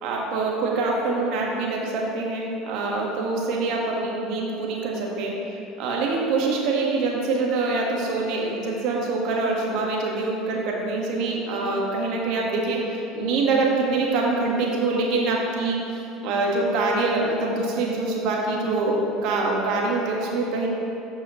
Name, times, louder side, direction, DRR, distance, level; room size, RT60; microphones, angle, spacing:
voice 1, 0.0-5.3 5.8-15.8 16.2-20.7, right 3 dB, 60° right, -2 dB, 1.5 m, -25 dB
13.5 x 4.8 x 3.1 m, 2.8 s
hypercardioid pair, 70°, 0 cm